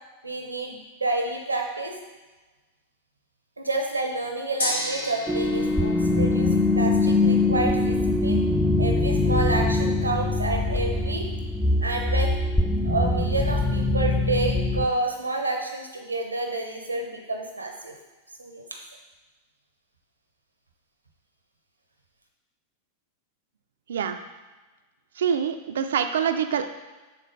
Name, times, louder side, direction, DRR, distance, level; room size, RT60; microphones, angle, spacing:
voice 1, 0.2-1.9 3.6-8.4 8.8-11.3 11.8-12.4 12.8-17.9 18.4-18.6, right 2 dB, 80° right, 2 dB, 0.8 m, -29 dB
Gong, 4.6-14.8, left 1 dB, 70° left, 1.2 m, -39 dB
sound 1, 5.3-14.9, left 2 dB, 5° left, 0.4 m, -23 dB
voice 2, 25.2-26.7, right 7 dB, 65° right, 8 dB, 0.4 m, -25 dB
6.9 x 3.9 x 3.8 m, 1.2 s
figure-of-eight pair, 90°, 0 cm